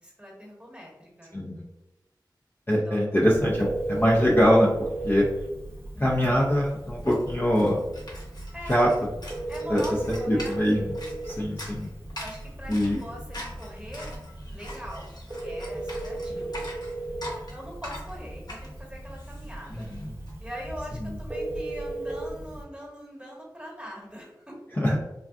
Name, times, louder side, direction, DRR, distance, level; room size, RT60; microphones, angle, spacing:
voice 1, 0.0-1.3 2.9-3.1 8.5-8.7 9.5-10.7 12.2-14.2 14.5-15.1 15.4-16.7 17.5-19.9 20.4-24.6, equal, 15° right, -3 dB, 1.1 m, -42 dB
voice 2, 2.7-4.7 5.0-5.3 6.0-7.8 8.7-8.9 9.7-9.8 10.1-10.9 11.2-11.9 12.7-13.0 16.3-16.4 19.7-20.0 21.0-21.1 24.8-25.0, equal, 30° left, -3 dB, 0.5 m, -23 dB
Telephone, 3.2-22.6, right 2 dB, 30° right, 0.7 m, -36 dB
sound 1, 6.2-6.3 6.5-20.3, left 1 dB, 60° left, 0.9 m, -43 dB
3.5 x 2.2 x 2.4 m, 0.98 s
wide cardioid pair, 45°, 8 cm